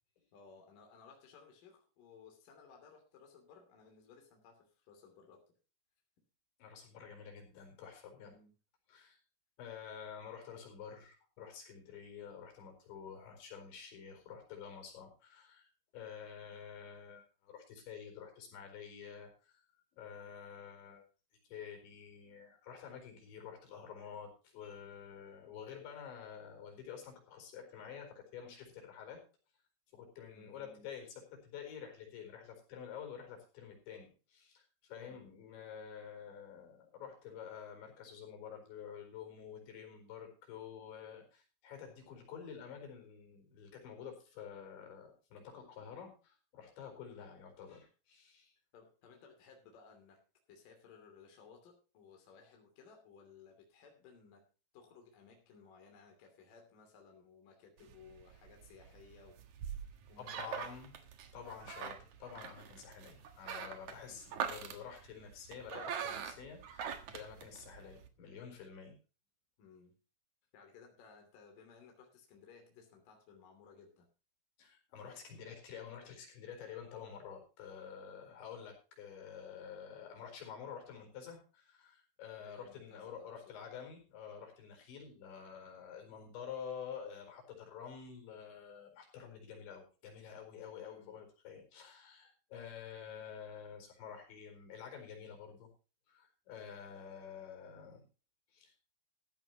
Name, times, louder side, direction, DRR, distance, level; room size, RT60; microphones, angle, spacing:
voice 1, 0.3-5.6 8.2-8.5 30.3-30.9 35.0-35.4 48.7-50.2 50.5-54.5 54.7-59.4 60.1-60.6 64.1-64.2 69.6-70.0 70.5-74.1 82.4-83.4 91.0-91.2, left 5 dB, 50° left, 2 dB, 3.9 m, -59 dB
voice 2, 6.6-8.3 8.9-9.2 9.6-21.0 21.4-29.2 29.9-48.5 60.2-61.0 61.3-69.0 74.6-95.7 96.1-98.0 98.5-98.7, left 7 dB, 65° left, 4 dB, 6.6 m, -49 dB
sound 1, 57.8-68.1, right 8 dB, 70° right, 1.7 m, -44 dB
15.0 x 14.0 x 2.9 m, 0.34 s
omnidirectional pair, 5.7 m